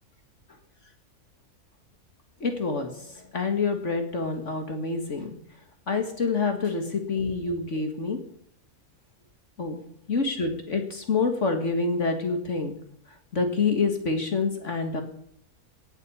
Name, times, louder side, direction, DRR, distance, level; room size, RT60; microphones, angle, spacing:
voice 1, 2.4-5.3 5.9-8.2 9.6-9.8 10.1-12.7 13.3-15.0, left 4 dB, 55° left, 5 dB, 2.2 m, -27 dB
17.5 x 8.2 x 8.7 m, 0.65 s
omnidirectional pair, 1.6 m